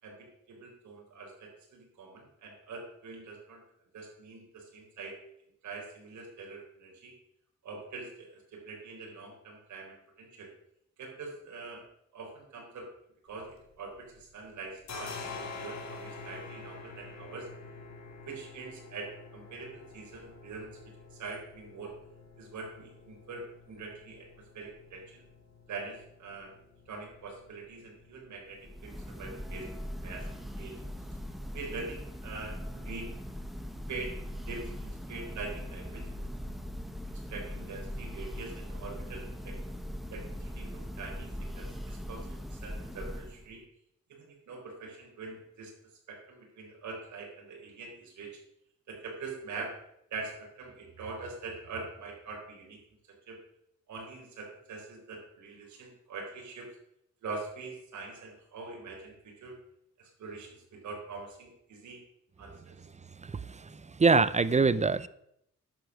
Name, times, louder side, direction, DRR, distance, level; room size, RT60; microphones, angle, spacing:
voice 1, 0.0-3.6 3.9-5.2 5.6-7.1 7.6-10.5 11.0-11.8 12.1-12.9 13.3-17.5 18.3-20.8 21.1-21.9 22.4-24.3 24.5-25.2 25.7-26.5 26.9-30.3 30.6-30.8 31.1-31.2 31.5-33.2 33.9-36.3 37.3-39.6 40.1-43.6 44.1-45.7 46.1-48.4 48.9-49.8 50.1-52.8 53.3-53.4 53.9-56.7 57.2-59.5 60.0-62.0 62.4-62.7, right 3 dB, 80° right, 4.2 m, -44 dB
sound 1, 13.3-14.2 14.5-32.0, left 4 dB, 65° left, 2.7 m, -48 dB
Church bell, 28.6-43.5, equal, ahead, 1.4 m, -40 dB
voice 2, 63.2-65.1, right 4 dB, 25° right, 0.6 m, -25 dB
10.5 x 7.9 x 6.2 m
cardioid pair, 95°, 29 cm